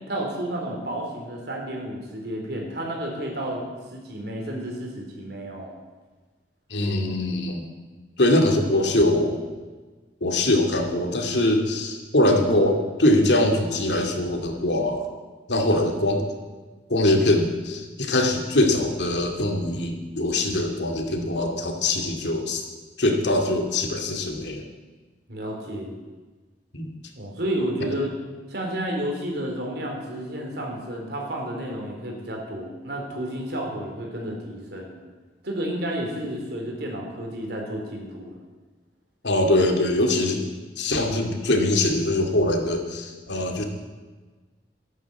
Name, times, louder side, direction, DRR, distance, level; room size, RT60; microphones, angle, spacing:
voice 1, 0.1-3.6 3.9-5.7 12.2-12.4 25.3-26.0 27.2-28.1 28.5-35.0 35.4-38.3, right 1 dB, 65° right, 0 dB, 4.0 m, -31 dB
voice 2, 6.7-7.7 8.2-9.4 10.2-15.1 15.5-16.2 16.9-22.6 23.0-24.6 26.7-26.9 39.2-40.4 40.8-43.6, left 1 dB, 80° left, 3 dB, 2.4 m, -22 dB
13.0 x 11.0 x 8.2 m, 1.3 s
head